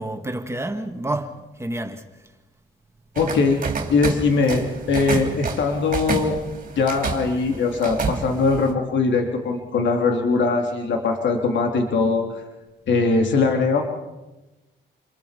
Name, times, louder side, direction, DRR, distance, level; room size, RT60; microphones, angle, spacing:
voice 1, 0.0-2.0, right 1 dB, 15° right, 2.2 m, -29 dB
voice 2, 3.2-3.6 3.9-6.4 6.8-12.2 12.9-13.8, left 4 dB, 65° left, 3.7 m, -21 dB
sound 1, 3.2-8.7, right 5 dB, 45° right, 3.5 m, -30 dB
29.0 x 22.5 x 5.4 m
cardioid pair, 90°, 20 cm